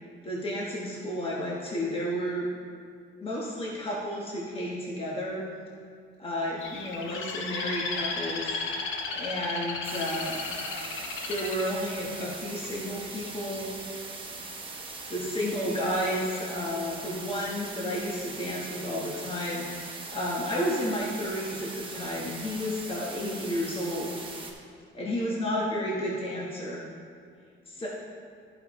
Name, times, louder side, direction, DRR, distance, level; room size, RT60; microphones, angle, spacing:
voice 1, 0.2-2.5 3.2-5.4 6.2-8.6 9.1-10.4 11.3-14.0 15.1-24.2 24.9-26.8 27.7-27.9, equal, 30° left, -5 dB, 1.5 m, -32 dB
Bird, 6.6-12.7 13.2-13.6, left 4 dB, 80° left, 1.0 m, -35 dB
sound 1, 9.8-24.5, right 3 dB, 25° right, 1.3 m, -41 dB
14.5 x 5.4 x 3.2 m, 2.2 s
cardioid pair, 90°, 20 cm